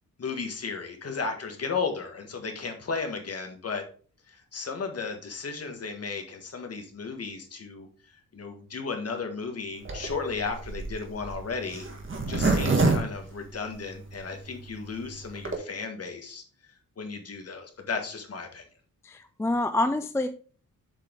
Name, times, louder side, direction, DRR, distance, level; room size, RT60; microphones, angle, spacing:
voice 1, 0.2-3.8 4.3-11.8 12.3-16.4 17.0-18.6, left 4 dB, 45° left, 5 dB, 1.5 m, -34 dB
Zipper (clothing), 9.8-14.1 14.6-14.7 14.9-15.0 15.2-15.6, right 3 dB, 35° right, 1.5 m, -26 dB
voice 2, 19.0-20.3, left 2 dB, 10° left, 9 dB, 0.4 m, -27 dB
7.5 x 4.9 x 3.7 m, 0.41 s
wide cardioid pair, 135°, 34 cm